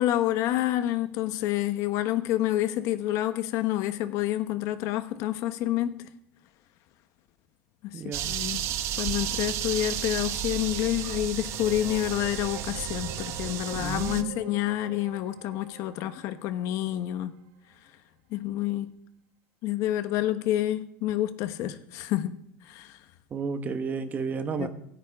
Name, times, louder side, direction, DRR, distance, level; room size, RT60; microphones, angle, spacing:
voice 1, 0.0-6.1 7.8-8.7 9.0-17.3 18.3-18.9 19.6-22.3 22.7-23.0 24.6-24.7, left 13 dB, 60° left, 1.2 m, -28 dB
voice 2, 7.9-8.4 13.7-14.4 23.3-24.7, right 5 dB, 30° right, 1.3 m, -32 dB
sound 1, 8.1-14.2, right 10 dB, 50° right, 1.0 m, -32 dB
sound 2, 11.5-17.2, right 9 dB, 85° right, 1.5 m, -45 dB
26.5 x 9.5 x 3.7 m
cardioid pair, 145°, 6 cm